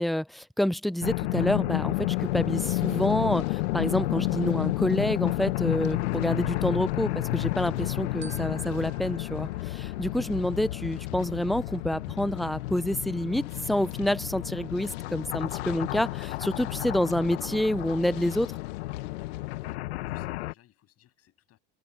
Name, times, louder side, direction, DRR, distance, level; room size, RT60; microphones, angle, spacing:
voice 1, 0.0-18.6, left 1 dB, ahead, 0.4 m, -28 dB
sound 1, 1.0-20.5, left 18 dB, 90° left, 1.1 m, -31 dB
sound 2, 2.1-19.8, left 24 dB, 70° left, 1.8 m, -51 dB
Glockenspiel, 8.2-10.7, right 4 dB, 35° right, 3.2 m, -52 dB
voice 2, 19.9-21.6, left 12 dB, 45° left, 7.7 m, -62 dB
supercardioid pair, 105°, 32 cm